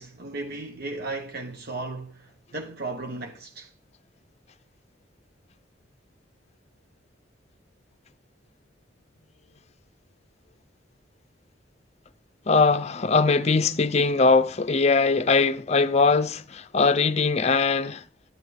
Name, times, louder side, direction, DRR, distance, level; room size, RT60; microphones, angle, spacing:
voice 1, 0.0-3.7, right 2 dB, 55° right, 1.1 m, -35 dB
voice 2, 12.5-18.0, left 4 dB, 35° left, 0.6 m, -21 dB
12.5 x 10.5 x 3.5 m
head